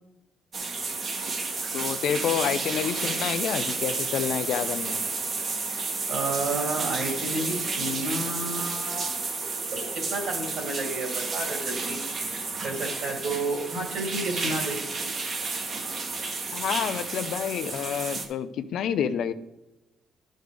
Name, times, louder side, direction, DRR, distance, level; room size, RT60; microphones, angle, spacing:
sound 1, 0.5-18.3, right 3 dB, 40° right, 1.2 m, -31 dB
voice 1, 1.7-5.1 16.5-19.3, left 8 dB, 70° left, 12 dB, 0.5 m, -28 dB
voice 2, 6.1-9.3 9.7-12.0 12.6-14.8, right 2 dB, 70° right, 0 dB, 2.8 m, -31 dB
11.5 x 6.4 x 3.4 m, 0.99 s
cardioid pair, 140°, 0 cm